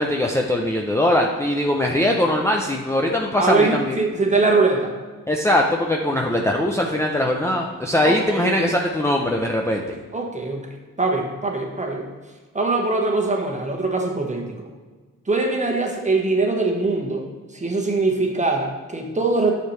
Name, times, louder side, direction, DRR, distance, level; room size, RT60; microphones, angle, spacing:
voice 1, 0.0-4.0 5.3-9.9, left 1 dB, 10° left, 0 dB, 0.6 m, -21 dB
voice 2, 3.4-4.9 8.0-8.7 10.1-10.7 11.0-12.1 12.5-14.6 15.3-17.2 17.5-19.5, right 3 dB, 20° right, 1 dB, 1.3 m, -22 dB
9.1 x 6.8 x 3.3 m, 1.4 s
cardioid pair, 105°, 32 cm